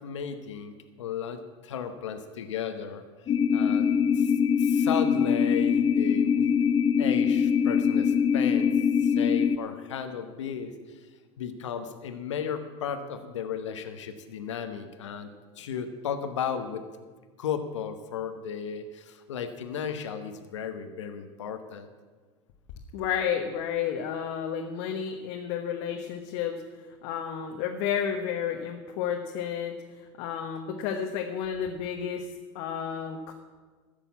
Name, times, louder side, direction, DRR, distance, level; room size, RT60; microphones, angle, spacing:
voice 1, 0.0-3.0 3.5-4.3 4.6-6.5 7.0-8.7 9.0-11.1 11.4-15.3 15.6-16.8 17.4-21.9, left 7 dB, 90° left, 8 dB, 1.1 m, -35 dB
sound 1, 3.3-9.6, left 7 dB, 35° left, 0.6 m, -23 dB
voice 2, 22.9-26.6 27.0-33.3, left 8 dB, 65° left, 2 dB, 1.3 m, -31 dB
13.5 x 6.9 x 8.4 m, 1.4 s
hypercardioid pair, 95°, 15 cm